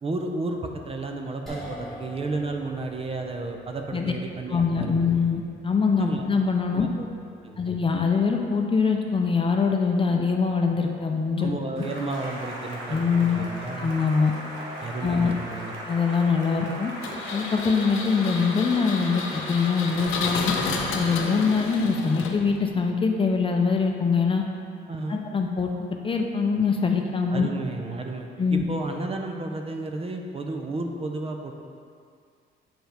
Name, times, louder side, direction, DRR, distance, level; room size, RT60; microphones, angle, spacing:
voice 1, 0.0-5.1 6.0-6.3 6.7-7.0 7.4-7.7 11.4-13.9 14.8-15.7 24.9-25.2 27.3-31.5, right 2 dB, 30° right, 3 dB, 0.6 m, -32 dB
sound 1, 1.5-13.8, equal, ahead, 1.4 m, -48 dB
voice 2, 4.5-6.9 7.6-11.5 12.9-13.4 13.8-14.3 15.0-15.3 15.9-16.9 17.3-20.5 20.9-24.4 25.1-25.7 26.0-27.5 28.4-28.6, left 5 dB, 25° left, 2 dB, 0.6 m, -23 dB
Cheering / Applause, 11.8-21.8, right 1 dB, 90° right, 1.1 m, -37 dB
Engine, 17.0-22.7, left 4 dB, 90° left, 0.6 m, -32 dB
7.7 x 4.4 x 3.4 m, 2.3 s
cardioid pair, 90°, 20 cm